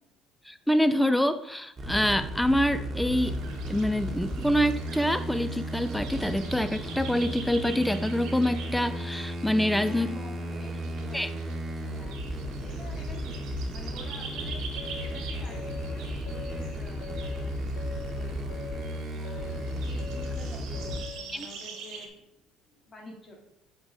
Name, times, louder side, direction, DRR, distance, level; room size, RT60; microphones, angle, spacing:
voice 1, 0.5-3.4 3.7-10.1 11.1-11.3 21.3-21.5, equal, 5° left, 12 dB, 0.4 m, -26 dB
sound 1, 1.8-21.0, equal, 25° right, 1.7 m, -34 dB
sound 2, 3.1-22.1, right 5 dB, 65° right, 1.1 m, -46 dB
voice 2, 9.8-12.2 12.6-14.6 15.0-17.5 18.0-18.6 19.0-19.5 19.9-22.3 22.7-23.4, left 2 dB, 30° left, 0 dB, 2.0 m, -49 dB
sound 3, 14.8-21.3, left 6 dB, 75° left, 0.5 m, -43 dB
7.2 x 4.8 x 3.5 m, 0.84 s
hypercardioid pair, 70°, 0 cm